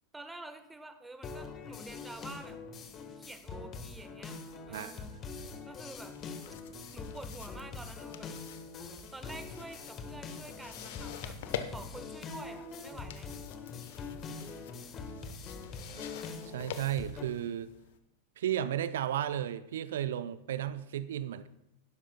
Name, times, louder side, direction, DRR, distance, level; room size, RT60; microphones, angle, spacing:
voice 1, 0.1-2.6 2.9-4.4 4.7-5.1 5.7-6.2 6.9-8.3 9.1-11.4 11.7-13.3 13.7-13.9, right 2 dB, 10° right, 9 dB, 1.2 m, -48 dB
sound 1, 1.2-17.2, left 4 dB, 30° left, 1.4 m, -44 dB
sound 2, 5.9-18.0, left 9 dB, 55° left, 0.9 m, -47 dB
voice 2, 16.5-17.7 18.4-21.5, right 11 dB, 60° right, 15 dB, 0.4 m, -34 dB
16.0 x 12.0 x 2.2 m, 0.84 s
figure-of-eight pair, 90°, 0 cm